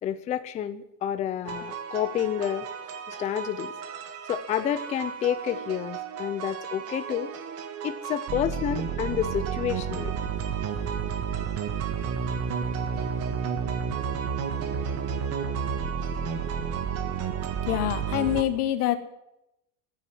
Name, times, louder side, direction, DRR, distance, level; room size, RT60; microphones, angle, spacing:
voice 1, 0.0-2.7 3.1-3.7 4.3-7.3 7.8-10.2, left 10 dB, 15° left, 10 dB, 0.5 m, -29 dB
sound 1, 1.5-18.4, right 7 dB, 30° right, 1.7 m, -31 dB
voice 2, 17.7-19.0, left 12 dB, 75° left, 9 dB, 1.9 m, -25 dB
14.0 x 10.0 x 9.8 m, 0.83 s
supercardioid pair, 150°, 45 cm